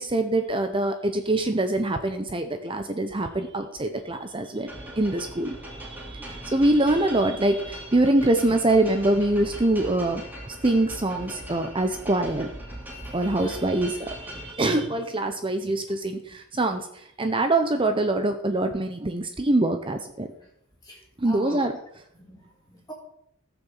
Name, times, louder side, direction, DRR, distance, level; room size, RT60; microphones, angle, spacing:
voice 1, 0.0-12.5 13.1-20.3 21.2-21.7, right 2 dB, 25° right, 7 dB, 0.8 m, -24 dB
sound 1, 4.6-14.5, equal, 10° right, 3.0 m, -40 dB
voice 2, 6.2-6.5 10.4-10.5 13.3-13.6 20.8-21.6 22.2-22.9, equal, 20° left, -2 dB, 2.2 m, -43 dB
15.0 x 7.1 x 7.4 m, 0.75 s
head